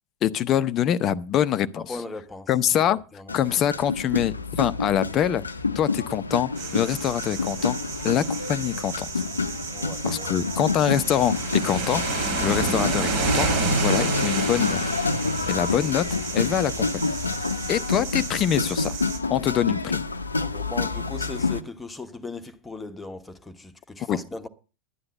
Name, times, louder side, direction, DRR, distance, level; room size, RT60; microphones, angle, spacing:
voice 1, 0.2-2.0 2.5-3.0 3.3-5.4 5.7-7.8 8.0-9.1 10.0-12.0 12.4-14.8 15.5-16.1 16.3-17.1 17.7-19.0 19.3-20.1 24.1-24.2, left 10 dB, 30° left, 0.7 m, -24 dB
voice 2, 1.7-2.5 2.8-2.9 3.1-3.3 9.7-10.4 20.4-24.5, left 3 dB, 10° left, 1.2 m, -38 dB
sound 1, 3.3-21.6, left 3 dB, 80° left, 0.7 m, -28 dB
sound 2, 6.6-19.2, right 5 dB, 50° right, 3.0 m, -31 dB
12.0 x 9.8 x 5.4 m
figure-of-eight pair, 90°, 0 cm